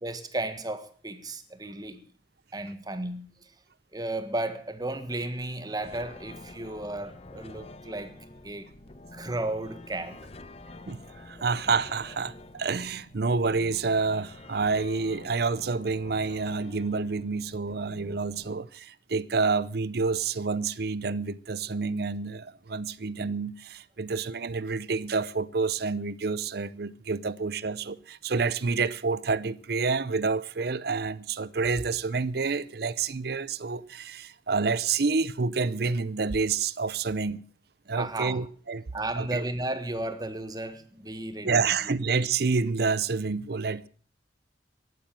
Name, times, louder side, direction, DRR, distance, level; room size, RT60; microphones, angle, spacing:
voice 1, 0.0-2.0 2.5-3.3 3.9-8.1 8.4-8.7 9.1-10.2 38.0-38.4 38.9-41.9, right 2 dB, 20° right, 1.5 m, -34 dB
sound 1, 5.8-18.6, left 2 dB, 35° left, 0.9 m, -48 dB
voice 2, 10.9-37.4 37.9-38.8 39.2-39.5 41.4-43.9, right 4 dB, 60° right, 0.7 m, -28 dB
14.0 x 11.5 x 7.4 m
head